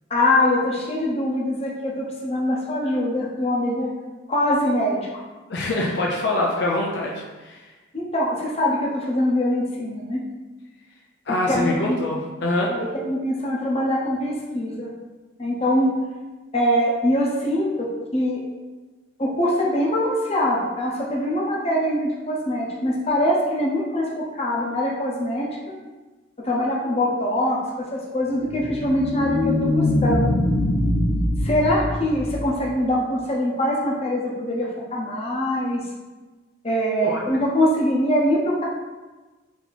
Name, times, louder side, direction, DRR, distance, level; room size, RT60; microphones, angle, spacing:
voice 1, 0.1-3.9 4.3-5.2 7.9-10.2 11.5-12.0 12.7-14.9 15.4-15.9 16.5-17.9 18.1-18.4 19.2-25.5 26.4-27.6 27.9-30.4 31.4-35.8 36.6-38.6, left 1 dB, 30° left, -3 dB, 0.8 m, -23 dB
voice 2, 5.5-7.6 11.3-12.7 37.0-37.2, left 2 dB, 60° left, -2 dB, 0.5 m, -24 dB
sound 1, 28.3-32.9, left 1 dB, 85° left, 0.9 m, -23 dB
4.1 x 2.8 x 4.1 m, 1.2 s
head